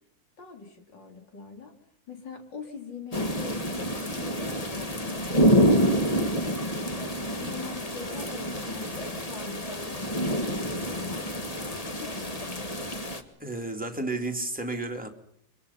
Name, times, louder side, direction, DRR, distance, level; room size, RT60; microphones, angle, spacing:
voice 1, 0.4-1.7 2.1-6.9 7.3-11.3 11.8-12.7, left 5 dB, 65° left, 4 dB, 3.9 m, -43 dB
sound 1, 3.1-13.2, equal, 20° left, 1.6 m, -27 dB
voice 2, 13.4-15.1, right 2 dB, 5° right, 2 dB, 2.2 m, -32 dB
28.0 x 23.5 x 5.7 m, 0.68 s
omnidirectional pair, 2.1 m